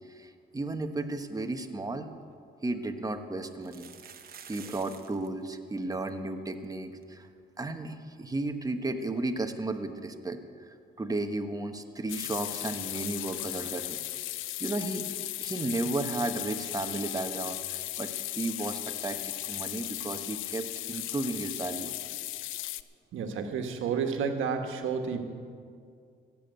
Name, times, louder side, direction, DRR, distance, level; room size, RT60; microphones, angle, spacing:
voice 1, 0.1-2.1 2.6-3.9 4.5-7.3 7.6-10.4 10.7-14.0 14.6-15.0 15.4-19.2 19.5-21.9, right 2 dB, 20° right, 6 dB, 1.1 m, -34 dB
sound 1, 2.3-2.4 3.5-5.3 5.5-5.6 5.8-6.1 6.6-6.7 7.0-7.1 9.2-9.3, right 7 dB, 50° right, 1.1 m, -49 dB
sound 2, 12.1-22.8, left 15 dB, 85° left, 0.4 m, -36 dB
voice 2, 23.1-25.2, right 6 dB, 80° right, 5 dB, 1.5 m, -30 dB
16.5 x 7.2 x 8.0 m, 2.3 s
cardioid pair, 90°, 20 cm